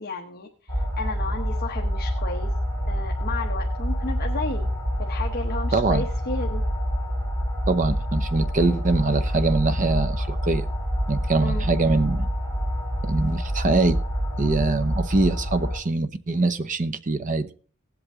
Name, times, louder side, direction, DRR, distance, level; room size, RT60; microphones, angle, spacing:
voice 1, 0.0-2.5 2.9-4.7 5.0-6.6 11.4-11.6, left 3 dB, 45° left, 2 dB, 1.0 m, -33 dB
sound 1, 0.7-15.8, equal, 60° right, 3.4 m, -27 dB
voice 2, 5.7-6.0 7.7-10.7 11.1-12.3 13.0-14.0 14.4-17.5, right 3 dB, 35° right, 12 dB, 0.7 m, -23 dB
18.0 x 8.0 x 3.6 m, 0.41 s
head